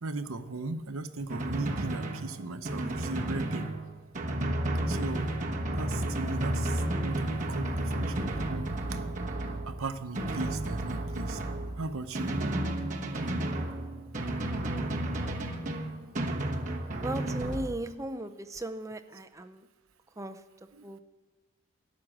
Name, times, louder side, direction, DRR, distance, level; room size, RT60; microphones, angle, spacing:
voice 1, 0.0-3.7 4.9-5.4 5.7-9.0 9.7-11.4 11.8-12.4 14.4-14.5 14.8-14.9 16.4-16.5 16.9-17.1 20.7-20.8, right 3 dB, 70° right, 10 dB, 0.8 m, -38 dB
Drum, 1.3-17.7, right 1 dB, 35° right, 1.2 m, -32 dB
voice 2, 17.0-19.6 20.2-20.4 20.8-21.0, right 1 dB, 15° right, 8 dB, 0.5 m, -37 dB
12.5 x 7.3 x 9.9 m, 1.3 s
head